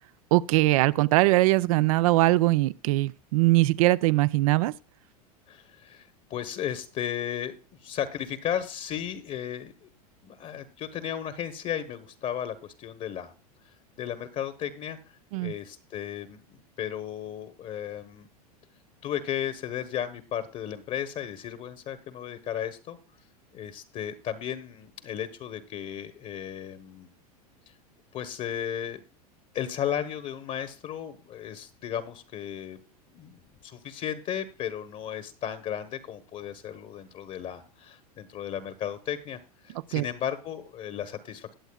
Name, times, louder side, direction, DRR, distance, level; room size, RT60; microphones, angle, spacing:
voice 1, 0.3-4.7 15.3-15.5 39.9-40.1, right 19 dB, 60° right, 0.5 m, -21 dB
voice 2, 5.5-7.6 7.8-9.9 10.2-13.3 14.0-18.3 19.0-23.0 23.5-27.1 28.1-29.0 29.5-32.8 33.1-41.5, left 9 dB, 40° left, 1.1 m, -35 dB
20.5 x 8.0 x 2.3 m
hypercardioid pair, 95°, 20 cm